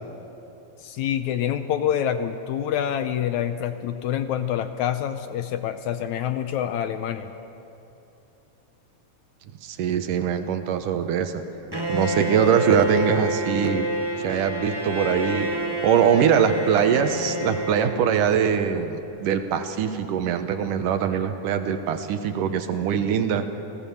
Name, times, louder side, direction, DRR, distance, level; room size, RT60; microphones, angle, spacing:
voice 1, 0.8-7.3, left 10 dB, 75° left, 9 dB, 1.9 m, -26 dB
voice 2, 9.6-11.4 11.9-13.9 14.2-15.5 15.8-23.4, right 8 dB, 75° right, 8 dB, 2.6 m, -22 dB
Bowed string instrument, 11.7-18.6, right 1 dB, 40° right, 0.3 m, -28 dB
29.5 x 17.5 x 7.1 m, 2.9 s
omnidirectional pair, 3.8 m